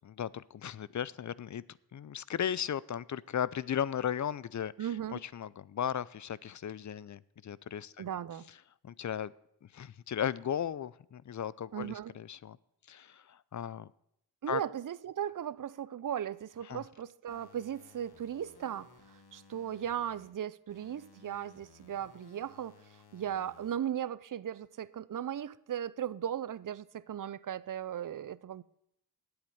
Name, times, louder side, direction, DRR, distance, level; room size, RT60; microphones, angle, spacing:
voice 1, 0.0-1.6 1.9-8.1 8.8-9.3 9.7-12.6 12.9-13.9 14.5-14.6 16.7-16.8, left 9 dB, 50° left, 0.5 m, -36 dB
voice 2, 4.8-5.2 8.0-8.5 11.7-12.1 14.4-22.8 23.1-28.6, right 9 dB, 55° right, 0.6 m, -37 dB
sound 1, 17.3-20.3 20.7-23.7, left 4 dB, 80° left, 2.1 m, -60 dB
8.5 x 8.0 x 9.1 m
cardioid pair, 50°, 38 cm